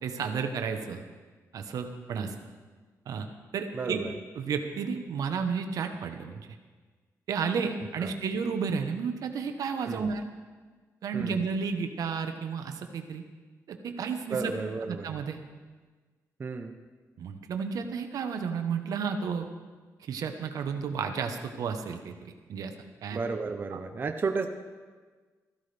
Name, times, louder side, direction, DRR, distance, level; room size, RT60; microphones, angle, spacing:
voice 1, 0.0-1.0 1.5-2.3 3.1-3.3 3.5-4.0 4.3-6.5 7.3-10.2 11.0-13.2 13.7-14.5 14.9-15.4 17.2-19.5 20.0-22.7 23.0-23.2 23.7-23.8, right 6 dB, 75° right, 6 dB, 1.0 m, -32 dB
voice 2, 3.7-4.1 8.0-8.1 9.9-10.1 11.1-11.4 14.3-15.1 16.4-16.8 23.1-24.5, right 4 dB, 35° right, 5 dB, 0.7 m, -33 dB
15.5 x 14.0 x 3.4 m, 1.4 s
wide cardioid pair, 135°, 6 cm